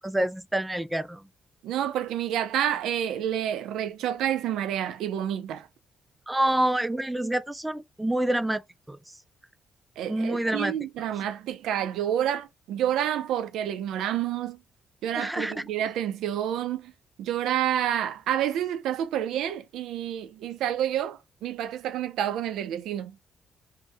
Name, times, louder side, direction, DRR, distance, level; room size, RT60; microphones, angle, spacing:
voice 1, 0.0-1.2 6.3-8.6 8.9-9.1 10.1-10.7 15.1-15.6, right 1 dB, 10° right, 0.3 m, -27 dB
voice 2, 1.6-5.7 10.0-14.6 15.0-16.9 17.2-23.1, right 10 dB, 85° right, 0.4 m, -29 dB
2.7 x 2.1 x 3.3 m
cardioid pair, 90°, 0 cm